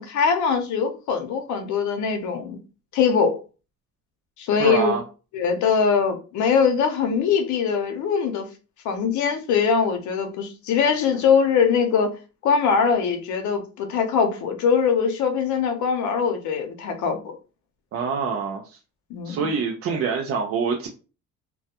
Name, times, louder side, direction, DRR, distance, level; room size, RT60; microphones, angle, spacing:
voice 1, 0.0-2.6 2.9-3.4 4.4-4.9 5.3-8.5 8.8-12.2 12.4-17.3 19.1-19.5, left 6 dB, 75° left, 0.7 m, -22 dB
voice 2, 4.6-5.0 17.9-18.8 19.2-20.9, right 5 dB, 50° right, 0.4 m, -25 dB
2.2 x 2.2 x 2.8 m
cardioid pair, 115°, 30 cm